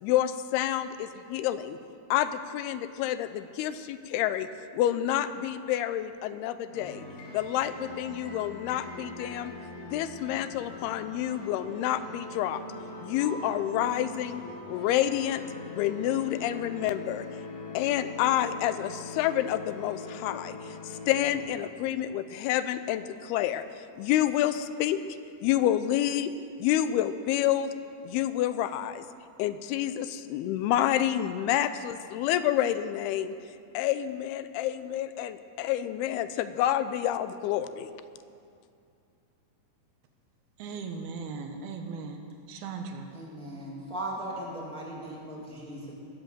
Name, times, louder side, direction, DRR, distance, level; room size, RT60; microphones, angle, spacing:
voice 1, 0.0-1.8 2.1-4.5 4.7-7.1 7.3-9.5 9.8-12.6 13.0-14.4 14.7-15.4 15.7-17.3 17.7-23.6 24.0-25.0 25.4-26.3 26.6-27.7 28.0-29.0 29.4-33.3 33.7-37.9, left 12 dB, 85° left, 12 dB, 2.5 m, -28 dB
sound 1, 6.7-21.4, left 2 dB, 70° left, 4.2 m, -42 dB
voice 2, 40.6-42.2 42.5-43.1, right 4 dB, 75° right, 5 dB, 2.9 m, -37 dB
voice 3, 43.1-45.9, right 1 dB, 5° left, -3 dB, 0.6 m, -38 dB
19.5 x 7.8 x 7.4 m, 2.5 s
omnidirectional pair, 4.6 m